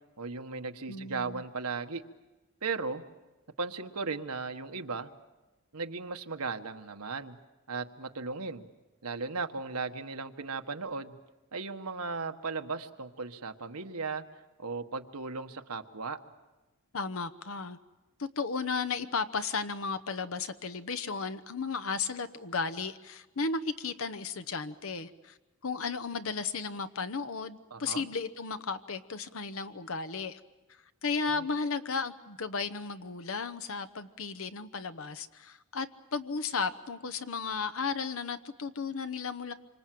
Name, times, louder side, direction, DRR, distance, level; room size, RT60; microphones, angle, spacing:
voice 1, 0.2-2.0 2.6-3.0 3.6-5.1 5.7-7.4 7.7-8.6 9.0-11.2 11.5-14.2 14.6-16.2 27.7-28.1 31.3-31.4, right 4 dB, 85° right, 6 dB, 1.4 m, -36 dB
voice 2, 0.9-1.4 16.9-17.8 18.2-25.4 25.6-30.4 31.0-39.5, left 4 dB, 65° left, 10 dB, 0.9 m, -34 dB
27.0 x 25.5 x 7.7 m, 1.1 s
head